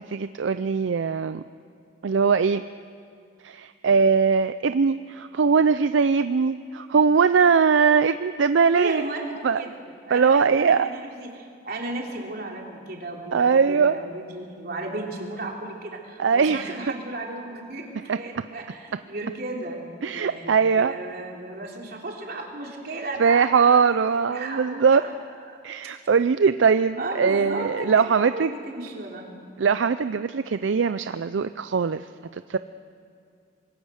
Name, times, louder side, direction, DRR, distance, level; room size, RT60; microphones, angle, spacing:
voice 1, 0.0-1.4 2.0-2.6 3.4-9.0 9.4-9.6 10.1-10.9 13.3-14.0 16.2-16.8 18.1-18.2 20.0-20.9 23.2-25.0 25.6-28.5 29.6-32.1 32.3-32.6, right 5 dB, 75° right, 12 dB, 0.5 m, -21 dB
voice 2, 8.7-9.7 10.1-19.8 20.1-25.1 25.5-25.6 27.0-29.3, right 2 dB, 50° right, -1 dB, 3.5 m, -35 dB
25.5 x 21.5 x 6.5 m, 2.4 s
head